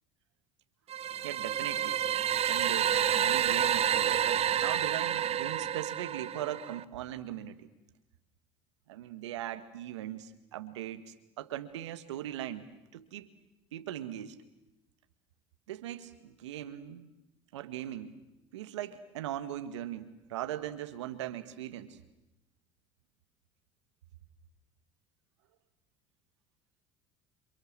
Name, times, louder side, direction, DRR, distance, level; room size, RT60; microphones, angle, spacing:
sound 1, 0.9-6.8, right 9 dB, 45° right, 1.0 m, -29 dB
voice 1, 1.2-2.0 2.5-7.7 8.9-12.7 12.9-13.3 13.7-14.4 15.7-17.1 17.5-18.2 18.5-22.0, right 12 dB, 85° right, 11 dB, 1.9 m, -40 dB
29.5 x 27.0 x 7.6 m, 0.94 s
hypercardioid pair, 70°, 15 cm